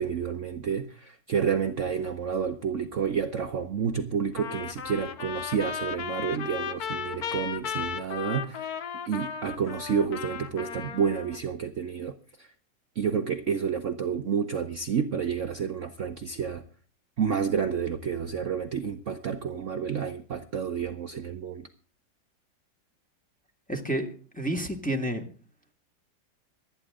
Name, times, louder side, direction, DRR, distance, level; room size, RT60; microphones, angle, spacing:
voice 1, 0.0-8.7 9.1-12.5 13.0-16.6 17.2-21.7, right 7 dB, 50° right, 6 dB, 1.1 m, -30 dB
Trumpet, 4.4-11.4, left 7 dB, 60° left, 1.6 m, -35 dB
voice 2, 23.7-25.2, right 1 dB, 5° left, 3 dB, 1.9 m, -30 dB
25.5 x 9.7 x 3.7 m, 0.38 s
omnidirectional pair, 1.9 m